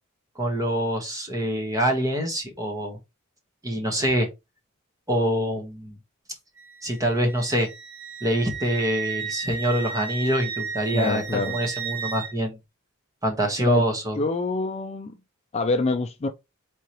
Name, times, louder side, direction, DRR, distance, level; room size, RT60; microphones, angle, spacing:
voice 1, 0.3-3.0 3.6-4.3 5.1-6.0 6.8-7.7 8.2-12.6 13.2-14.2, equal, 15° right, 1.2 m, -25 dB
Wind instrument woodwind instrument, 6.6-12.3, right 6 dB, 90° right, 1.3 m, -34 dB
voice 2, 10.9-11.6 13.6-13.8 14.2-15.2 15.5-16.3, left 3 dB, 30° left, 0.4 m, -26 dB
4.3 x 3.7 x 3.0 m
head